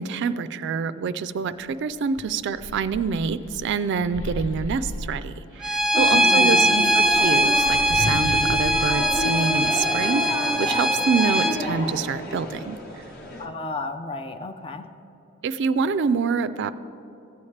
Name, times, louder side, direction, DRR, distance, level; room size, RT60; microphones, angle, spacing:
voice 1, 0.0-5.3 5.6-12.8 15.4-16.7, right 5 dB, 60° right, 13 dB, 0.3 m, -26 dB
sound 1, 1.6-1.7 2.1-5.8 6.7-10.4, left 1 dB, 75° left, 0.6 m, -35 dB
Bowed string instrument, 5.6-11.5, right 1 dB, 5° right, 0.8 m, -21 dB
sound 2, 5.9-13.5, left 1 dB, 50° left, 1.0 m, -31 dB
voice 2, 6.1-6.8 13.4-14.8, left 3 dB, 25° left, 8 dB, 0.5 m, -32 dB
14.5 x 8.5 x 3.2 m, 3.0 s
head